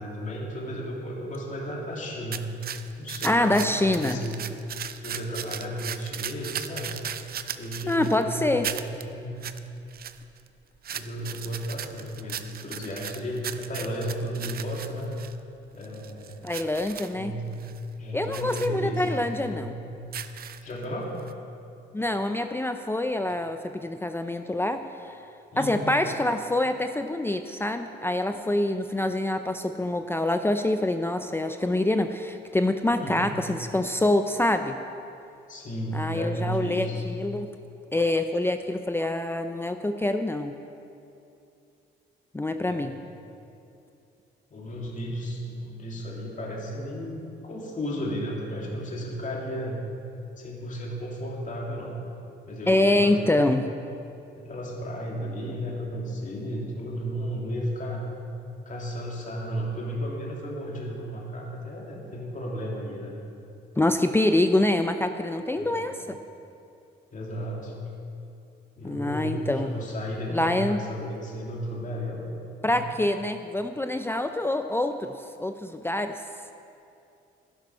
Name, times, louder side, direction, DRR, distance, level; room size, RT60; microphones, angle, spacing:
voice 1, 0.0-2.5 3.0-4.5 5.0-7.0 7.5-9.4 10.9-15.1 15.7-16.4 17.1-17.6 18.0-19.7 20.6-21.1 25.5-25.9 33.0-33.3 35.5-37.1 42.6-42.9 44.5-49.8 50.4-52.0 52.5-53.6 54.4-58.0 58.7-63.2 65.6-65.9 67.1-67.7 68.8-72.3 72.6-72.9, equal, 40° left, -2 dB, 2.5 m, -34 dB
sound 1, 2.3-8.2 8.6-9.0 9.4-9.6 9.9-10.5 10.8-15.3 15.8-17.1 17.5-17.8 18.3-18.7 19.2-19.3 20.0-20.8 21.3-21.4, right 9 dB, 50° right, 0.6 m, -37 dB
voice 2, 3.2-4.2 7.9-8.7 16.4-17.3 18.1-19.7 21.9-25.2 25.6-34.8 35.9-37.5 37.9-40.5 42.3-42.9 52.7-53.6 63.8-66.2 68.8-69.7 70.3-70.8 72.6-75.1 75.4-76.2, left 1 dB, 10° left, 7 dB, 0.5 m, -25 dB
12.0 x 10.5 x 5.5 m, 2.6 s
cardioid pair, 90°, 20 cm